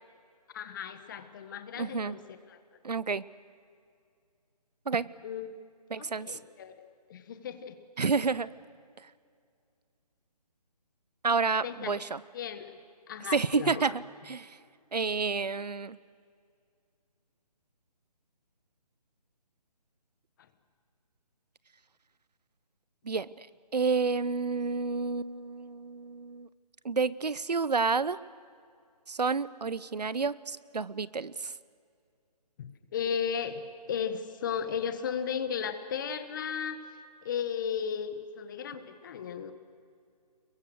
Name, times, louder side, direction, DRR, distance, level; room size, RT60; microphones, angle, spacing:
voice 1, 0.5-2.6 5.2-5.5 6.0-7.8 11.6-12.0 12.3-12.7 13.1-13.9 32.6-36.8 37.2-39.5, left 7 dB, 30° left, 10 dB, 1.5 m, -35 dB
voice 2, 1.8-2.2 2.8-3.2 4.9-5.1 5.9-6.4 8.0-8.5 11.2-12.2 13.3-14.5 14.9-16.0 23.0-23.5 23.7-26.5 26.8-28.2 29.1-31.5, right 4 dB, 80° right, 18 dB, 0.9 m, -30 dB
29.5 x 22.5 x 6.4 m, 2.3 s
figure-of-eight pair, 155°, 21 cm